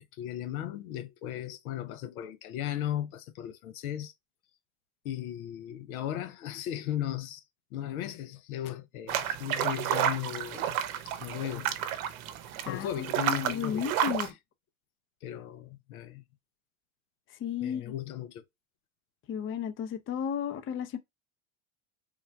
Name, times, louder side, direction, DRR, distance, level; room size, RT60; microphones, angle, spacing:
voice 1, 0.2-4.1 5.0-7.4 7.7-10.8 11.1-11.8 12.7-14.3 15.2-16.2 17.6-18.5, left 11 dB, 85° left, 0.7 m, -36 dB
sound 1, 9.1-14.3, right 10 dB, 75° right, 0.8 m, -31 dB
voice 2, 12.6-14.3 17.3-17.9 19.3-21.0, left 8 dB, 30° left, 0.6 m, -34 dB
3.7 x 2.3 x 4.3 m
supercardioid pair, 110°, 42 cm